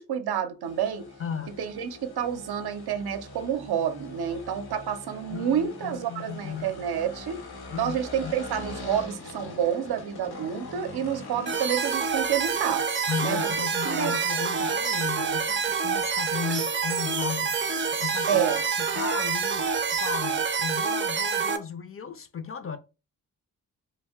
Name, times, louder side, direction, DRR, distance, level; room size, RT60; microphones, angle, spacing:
voice 1, 0.0-1.1 1.6-7.4 7.8-12.8 13.2-13.4 13.8-14.3 18.3-18.6, right 9 dB, 85° right, 0.5 m, -29 dB
sound 1, 0.6-20.5, left 2 dB, 90° left, 0.9 m, -45 dB
voice 2, 1.2-1.6 5.3-6.7 7.7-8.0 8.2-8.3 13.1-18.4 18.8-22.8, left 7 dB, 40° left, 0.4 m, -35 dB
sound 2, 11.5-21.6, right 5 dB, 30° right, 0.5 m, -27 dB
2.6 x 2.1 x 3.4 m
cardioid pair, 65°, 37 cm